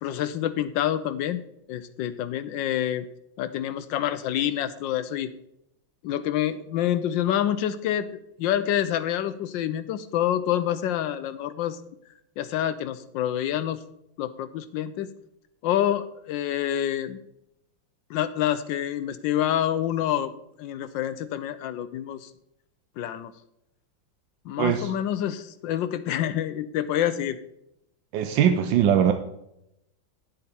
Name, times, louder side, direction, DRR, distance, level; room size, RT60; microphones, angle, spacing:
voice 1, 0.0-1.4 1.7-3.0 3.4-5.3 6.0-8.1 8.4-11.8 12.4-13.8 14.2-15.1 15.6-17.2 18.1-20.3 20.6-22.3 23.0-23.3 24.4-27.4, left 11 dB, 75° left, 12 dB, 1.2 m, -27 dB
voice 2, 24.6-24.9 28.1-29.1, right 9 dB, 75° right, 7 dB, 1.3 m, -21 dB
10.0 x 7.6 x 4.3 m, 0.80 s
omnidirectional pair, 2.1 m